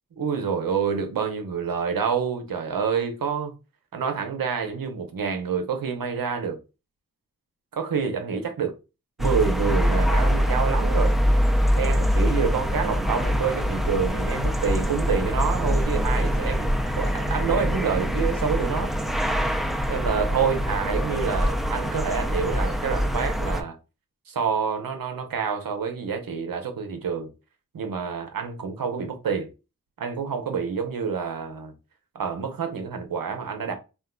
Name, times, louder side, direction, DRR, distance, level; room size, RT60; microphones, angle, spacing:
voice 1, 0.2-3.5 3.9-6.6 7.7-8.7 9.2-11.2 11.8-18.9 19.9-23.8 24.3-27.3 27.7-29.5 30.0-31.7 32.1-33.7, right 6 dB, 80° right, 0.8 m, -27 dB
sound 1, 9.2-23.6, equal, ahead, 0.5 m, -24 dB
3.8 x 2.5 x 2.2 m
cardioid pair, 40°, 34 cm